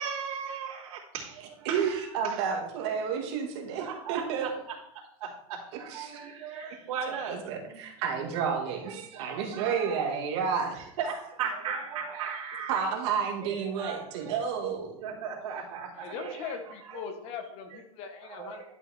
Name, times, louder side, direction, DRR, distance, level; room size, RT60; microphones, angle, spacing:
voice 1, 0.0-2.4 3.8-4.5 5.2-7.4 7.7-7.8 8.7-10.1 10.7-12.8 13.4-14.4 15.0-16.5 18.4-18.6, right 6 dB, 80° right, -9 dB, 3.0 m, -37 dB
voice 2, 1.7-4.5 5.9-6.2 7.3-10.8 12.7-15.1, right 6 dB, 50° right, 3 dB, 1.9 m, -31 dB
voice 3, 15.9-18.6, left 6 dB, 35° left, 6 dB, 1.3 m, -40 dB
11.0 x 5.8 x 4.1 m, 0.79 s
supercardioid pair, 165°, 19 cm